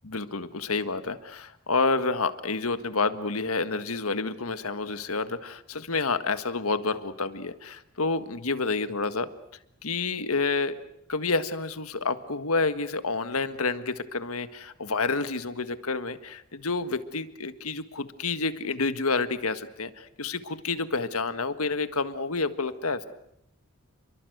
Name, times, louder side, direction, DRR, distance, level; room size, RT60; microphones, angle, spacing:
voice 1, 0.0-9.3 9.8-10.8 11.1-23.0, left 3 dB, 75° left, 10 dB, 1.7 m, -29 dB
30.0 x 23.0 x 8.0 m, 0.78 s
head